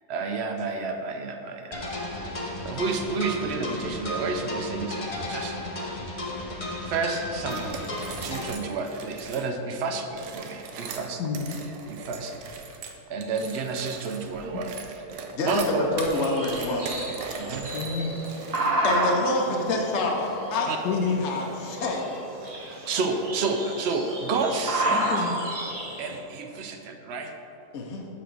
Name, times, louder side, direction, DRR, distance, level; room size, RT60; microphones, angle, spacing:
voice 1, 0.1-1.9 2.6-5.6 6.8-7.9 8.2-11.2 11.9-12.3 13.1-14.8 15.4-15.9 17.1-17.7 20.7-20.8 22.5-25.1 26.0-27.3, right 4 dB, 70° right, 5 dB, 0.6 m, -30 dB
sound 1, 1.7-8.5, left 1 dB, 35° left, 0.5 m, -34 dB
sound 2, 7.5-9.5 10.1-19.0, right 5 dB, 85° right, 1.2 m, -40 dB
voice 2, 11.2-11.6 14.5-14.6 17.7-18.2 20.8-21.2 24.9-25.6, left 5 dB, 80° left, 0 dB, 1.1 m, -29 dB
voice 3, 15.3-16.9 18.8-22.1 27.7-28.1, left 2 dB, 55° left, 0 dB, 0.9 m, -27 dB
sound 3, 16.1-26.2, right 1 dB, 30° right, 0.8 m, -31 dB
5.8 x 5.1 x 6.2 m, 2.8 s
omnidirectional pair, 1.7 m